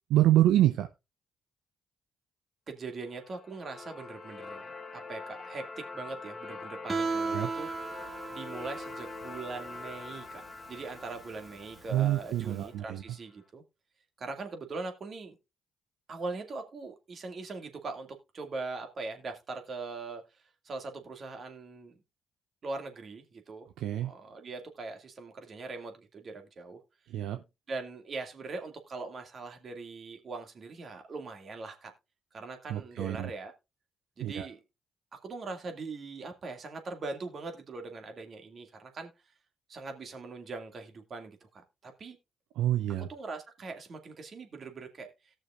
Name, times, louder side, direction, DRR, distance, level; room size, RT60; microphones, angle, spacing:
voice 1, 0.1-0.9 7.3-7.5 11.9-13.0 23.8-24.1 27.1-27.4 32.7-33.3 34.2-34.5 42.6-43.1, right 13 dB, 75° right, 0.6 m, -26 dB
voice 2, 2.7-7.7 8.3-10.4 10.7-13.6 14.2-15.4 16.1-18.1 18.3-20.2 20.6-22.0 22.6-23.7 24.0-26.8 27.7-31.9 32.3-33.5 34.2-34.6 35.1-39.1 39.7-41.5 41.8-42.2 43.0-45.1, right 3 dB, 50° right, 2.2 m, -41 dB
sound 1, 3.0-13.1, left 4 dB, 25° left, 2.4 m, -45 dB
Guitar, 6.9-12.6, right 4 dB, 30° right, 1.5 m, -37 dB
18.0 x 6.4 x 2.5 m
hypercardioid pair, 50°, 0 cm